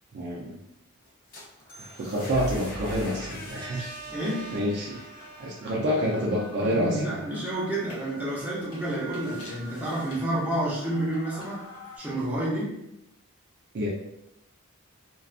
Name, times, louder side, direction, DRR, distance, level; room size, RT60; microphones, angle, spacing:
voice 1, 0.1-0.6 2.0-4.0 4.5-5.0 5.4-7.2 13.7-13.9, equal, 50° right, -3 dB, 0.4 m, -28 dB
sound 1, 1.1-6.9, right 1 dB, 45° left, 0.6 m, -41 dB
sound 2, 1.6-1.7 2.1-12.0, equal, 85° left, 0.7 m, -46 dB
voice 2, 4.1-4.5 6.6-11.7 12.0-12.8, right 1 dB, 10° right, -8 dB, 0.7 m, -30 dB
2.4 x 2.2 x 2.4 m, 0.85 s
head